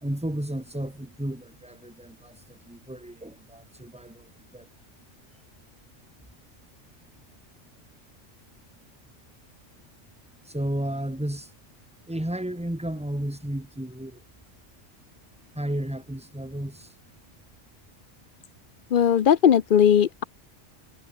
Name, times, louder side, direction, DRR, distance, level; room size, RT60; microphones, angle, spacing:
voice 1, 0.0-4.7 10.5-11.5 12.1-14.2 15.6-16.9, right 1 dB, 5° right, 1.8 m, -33 dB
voice 2, 18.9-20.2, left 9 dB, 55° left, 0.7 m, -18 dB
omnidirectional pair, 1.3 m